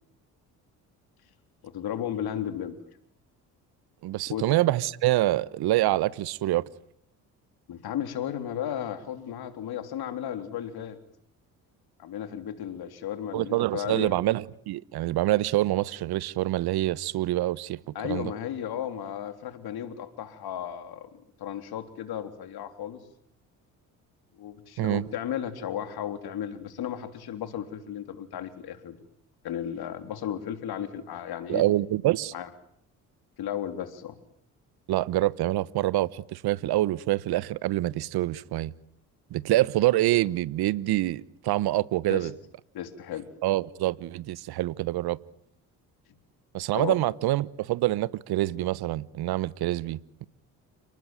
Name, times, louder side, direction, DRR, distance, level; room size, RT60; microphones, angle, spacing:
voice 1, 1.6-2.8 4.3-4.4 7.7-11.0 12.0-14.2 18.0-23.0 24.4-29.0 29.4-31.6 32.3-32.5 33.4-34.2 42.1-42.3 42.7-43.3 46.7-47.0, left 10 dB, 65° left, 3.5 m, -34 dB
voice 2, 4.0-6.6 13.3-18.3 24.8-25.1 31.5-32.3 34.9-38.7 39.3-42.3 43.4-45.2 46.5-50.3, right 16 dB, 70° right, 1.2 m, -26 dB
30.0 x 19.5 x 9.2 m
supercardioid pair, 60°, 40 cm